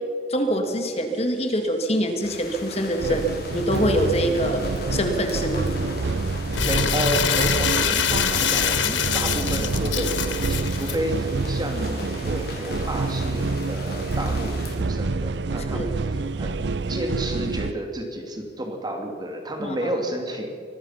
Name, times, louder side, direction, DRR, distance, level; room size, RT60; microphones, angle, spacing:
voice 1, 0.3-3.2 3.5-4.6 4.9-5.7 15.7-15.9 19.6-19.9, equal, 35° left, 5 dB, 2.1 m, -24 dB
sound 1, 2.2-14.8, left 2 dB, 55° left, 3.9 m, -39 dB
sound 2, 3.0-17.7, right 3 dB, 70° right, 0.6 m, -27 dB
Crumpling crinkling, 6.5-11.0, left 8 dB, 85° left, 1.4 m, -24 dB
voice 2, 6.6-20.5, right 1 dB, 20° right, 3 dB, 2.7 m, -31 dB
24.5 x 19.5 x 5.8 m, 2.4 s
head